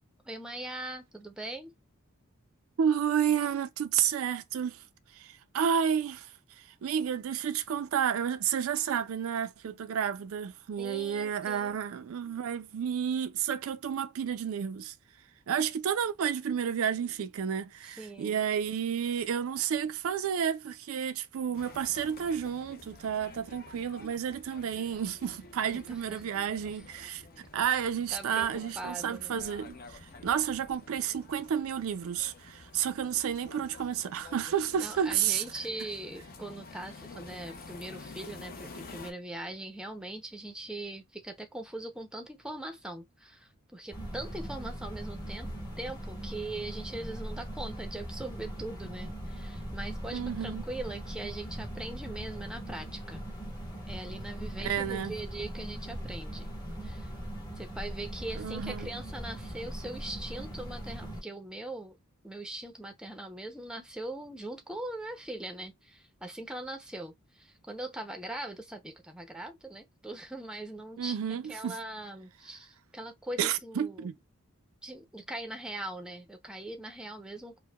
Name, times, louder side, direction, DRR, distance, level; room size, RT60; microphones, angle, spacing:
voice 1, 0.2-1.7 10.8-11.8 17.8-18.5 25.7-26.2 26.7-26.8 28.1-29.4 34.8-45.5 45.8-53.2 53.9-56.5 56.8-57.1 57.6-62.0 62.2-74.1 74.8-77.6, right 1 dB, 5° right, 0.5 m, -41 dB
voice 2, 2.8-4.8 5.1-14.9 15.5-27.2 27.5-35.4 50.1-50.6 54.6-55.1 58.4-58.9 71.0-71.8 73.4-74.1, right 8 dB, 70° right, 0.4 m, -31 dB
sound 1, 21.6-39.1, left 3 dB, 45° left, 0.7 m, -50 dB
sound 2, 43.9-61.2, equal, 20° left, 1.1 m, -40 dB
4.5 x 2.1 x 2.2 m
head